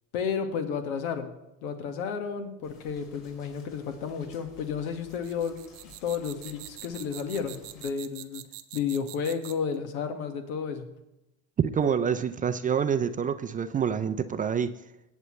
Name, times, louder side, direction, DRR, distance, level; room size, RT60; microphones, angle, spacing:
voice 1, 0.1-1.3 1.6-5.6 5.8-8.4 8.7-10.9, left 6 dB, 90° left, 6 dB, 1.8 m, -32 dB
sound 1, 2.6-7.9, left 3 dB, 50° left, 4.6 m, -55 dB
sound 2, 5.1-9.7, right 17 dB, 75° right, 1.0 m, -44 dB
voice 2, 11.6-14.8, right 7 dB, 20° right, 11 dB, 0.4 m, -27 dB
19.0 x 8.2 x 3.2 m, 0.91 s
supercardioid pair, 120°, 41 cm